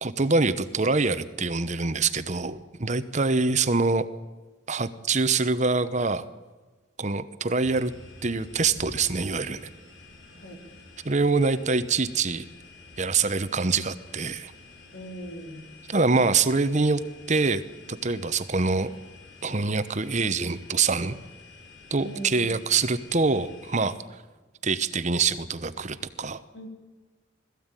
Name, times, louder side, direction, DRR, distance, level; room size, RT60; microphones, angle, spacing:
voice 1, 0.0-4.1 4.7-6.2 7.0-7.9 8.2-9.6 11.0-12.5 13.0-14.5 15.9-17.0 17.3-17.6 17.9-18.9 19.4-21.1 21.9-23.9 24.6-26.4, right 4 dB, 40° right, 12 dB, 0.9 m, -25 dB
sound 1, 7.6-23.9, left 3 dB, 90° left, 6.5 m, -49 dB
voice 2, 14.9-15.7 22.0-22.6 26.5-26.7, right 1 dB, 70° left, 3 dB, 4.1 m, -40 dB
21.0 x 14.5 x 9.0 m, 1.3 s
head